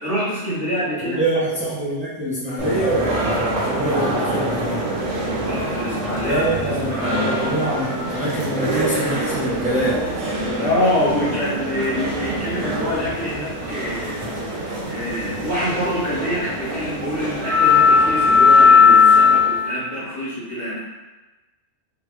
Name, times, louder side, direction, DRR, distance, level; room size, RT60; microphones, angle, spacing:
voice 1, 0.0-1.2 5.4-7.1 10.6-20.8, left 1 dB, 50° right, -10 dB, 1.8 m, -26 dB
voice 2, 1.0-4.9 6.2-10.1, right 1 dB, 10° right, -8 dB, 0.7 m, -25 dB
sound 1, 2.6-19.7, left 4 dB, 75° right, 1.2 m, -20 dB
3.6 x 2.0 x 3.1 m, 1.1 s
omnidirectional pair, 1.3 m